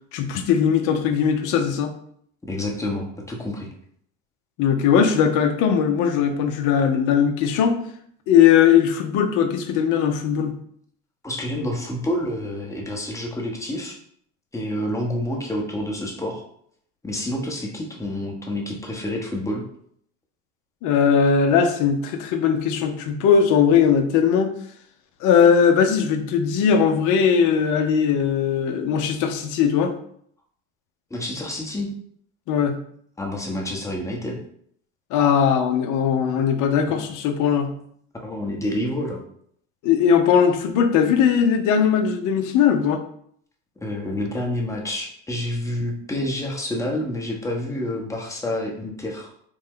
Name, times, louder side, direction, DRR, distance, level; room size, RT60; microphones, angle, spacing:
voice 1, 0.1-1.9 4.6-7.8 8.3-10.5 20.8-24.5 25.2-29.9 32.5-32.8 35.1-37.7 39.8-43.0, left 7 dB, 55° left, 7 dB, 0.6 m, -19 dB
voice 2, 2.4-3.7 11.2-14.0 14.5-16.4 17.0-19.6 31.1-31.9 33.2-34.4 38.2-39.2 43.8-49.3, left 1 dB, 10° left, 0 dB, 0.8 m, -28 dB
3.1 x 2.2 x 3.6 m, 0.65 s
hypercardioid pair, 85°, 36 cm